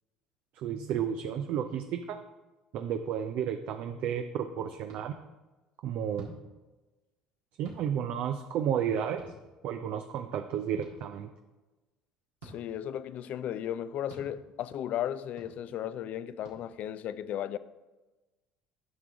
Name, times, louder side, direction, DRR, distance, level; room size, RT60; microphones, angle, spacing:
voice 1, 0.5-2.2 2.7-5.1 5.8-6.3 7.6-9.2 9.6-11.3, right 8 dB, 60° right, 0.5 m, -32 dB
sound 1, 4.9-5.0 6.1-6.4 7.6-7.8 9.2-9.3 10.8-10.9 12.4-12.6 14.1-14.3 15.4-15.5 16.4-16.6, right 2 dB, 80° right, 1.7 m, -47 dB
voice 2, 12.4-17.6, left 10 dB, 55° left, 0.4 m, -35 dB
9.4 x 6.0 x 3.5 m
hypercardioid pair, 65°, 3 cm